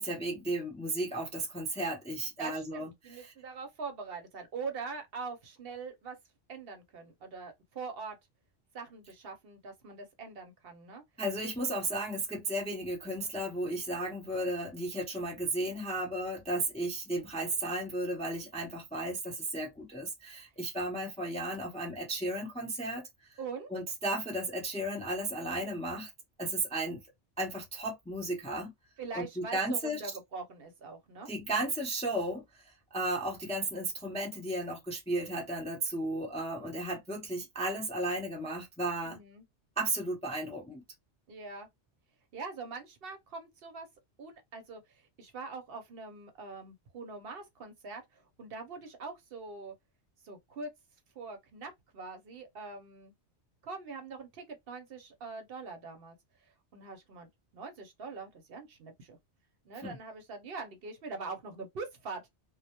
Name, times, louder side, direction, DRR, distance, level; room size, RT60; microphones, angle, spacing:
voice 1, 0.0-2.9 3.2-3.3 11.2-23.0 23.7-26.1 26.4-27.0 27.4-28.7 29.1-30.0 31.3-32.4 32.9-39.2 39.8-40.8 59.8-60.0, right 1 dB, 10° left, 0.4 m, -34 dB
voice 2, 2.4-6.2 6.5-8.2 8.7-11.0 23.4-23.7 29.0-31.3 39.1-39.4 41.3-41.7 42.3-43.9 44.2-49.7 50.2-50.7 51.2-53.1 53.6-56.1 56.7-59.2 59.7-62.3, right 4 dB, 60° right, 0.8 m, -43 dB
2.1 x 2.1 x 2.7 m
omnidirectional pair, 1.2 m